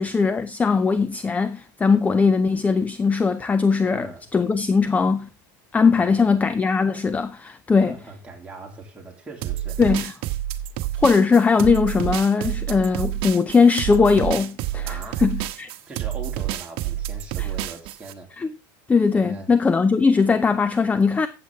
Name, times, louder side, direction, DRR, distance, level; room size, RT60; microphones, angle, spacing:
voice 1, 0.0-4.1 4.3-5.3 5.7-7.9 9.8-10.1 11.0-15.7 17.4-17.5 18.4-18.5 18.9-21.3, left 5 dB, 15° left, 0.6 m, -20 dB
voice 2, 3.9-4.3 5.9-6.4 7.7-9.8 14.9-15.2 15.9-18.4 19.1-19.5, right 3 dB, 10° right, 3.1 m, -40 dB
sound 1, 9.4-18.1, right 13 dB, 55° right, 1.2 m, -28 dB
14.0 x 7.7 x 3.6 m
supercardioid pair, 125°, 11 cm